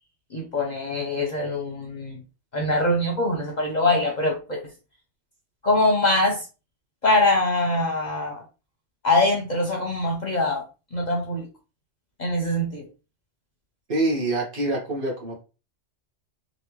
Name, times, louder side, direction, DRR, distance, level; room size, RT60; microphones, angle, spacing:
voice 1, 0.3-2.2 2.5-4.6 5.6-6.5 7.0-8.4 9.0-10.6 10.9-11.5 12.2-12.9, left 2 dB, 45° left, 0 dB, 0.7 m, -23 dB
voice 2, 13.9-15.4, right 2 dB, 50° right, -1 dB, 1.2 m, -25 dB
3.4 x 2.6 x 3.0 m, 0.32 s
omnidirectional pair, 1.2 m